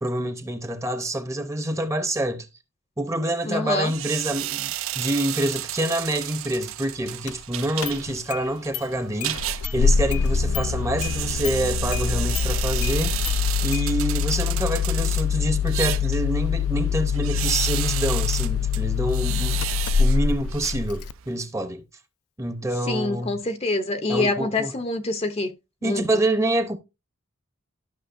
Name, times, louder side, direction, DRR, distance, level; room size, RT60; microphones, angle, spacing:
voice 1, 0.0-2.5 3.0-13.1 13.6-19.7 20.0-21.8 22.4-23.4 24.1-24.7 25.8-26.8, right 1 dB, 15° right, 0.7 m, -27 dB
voice 2, 3.4-3.9 22.9-25.5 25.8-26.0, left 2 dB, 25° left, 0.6 m, -26 dB
sound 1, 3.8-21.3, right 13 dB, 60° right, 0.4 m, -33 dB
Engine starting, 7.3-7.4 7.8-8.4 8.7-8.8 9.2-21.1, left 6 dB, 75° left, 0.3 m, -24 dB
12.5 x 5.9 x 2.5 m
head